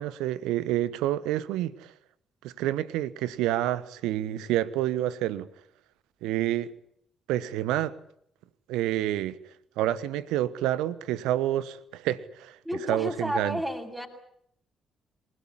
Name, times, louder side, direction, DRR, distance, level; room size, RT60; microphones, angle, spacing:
voice 1, 0.0-1.9 2.4-5.5 6.2-6.7 7.3-8.0 8.7-9.4 9.8-12.6 12.9-13.6, right 13 dB, 70° right, 1.1 m, -28 dB
voice 2, 12.6-14.1, equal, 10° right, 7.4 m, -31 dB
28.0 x 18.0 x 9.9 m
figure-of-eight pair, 40°, 0 cm